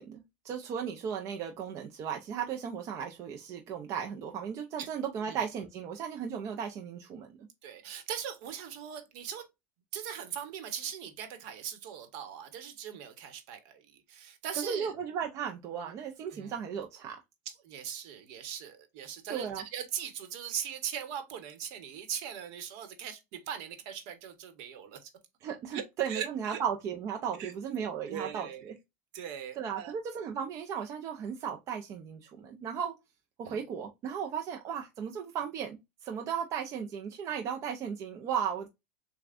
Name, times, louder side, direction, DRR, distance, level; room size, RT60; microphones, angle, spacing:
voice 1, 0.0-7.3 14.5-17.2 19.3-19.6 25.4-28.7 29.6-32.9 33.4-38.7, right 7 dB, 35° right, 0.6 m, -36 dB
voice 2, 7.6-9.4 9.9-14.9 16.3-16.6 17.6-25.1 25.7-25.8 26.1-26.6 27.4-27.5 28.1-28.6 29.1-29.9 33.4-33.6, right 8 dB, 60° right, 1.1 m, -40 dB
6.7 x 2.3 x 2.5 m
supercardioid pair, 145°, 8 cm